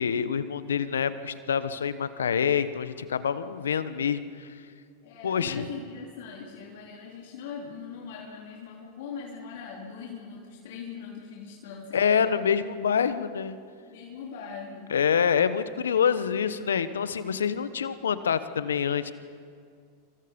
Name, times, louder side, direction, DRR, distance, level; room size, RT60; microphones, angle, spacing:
voice 1, 0.0-4.6 5.2-5.7 11.9-13.6 14.9-19.1, left 7 dB, 85° left, 13 dB, 1.1 m, -26 dB
voice 2, 5.0-12.3 13.8-14.9, left 5 dB, 65° left, -2 dB, 3.5 m, -41 dB
27.0 x 25.0 x 5.3 m, 2.2 s
hypercardioid pair, 95°, 0 cm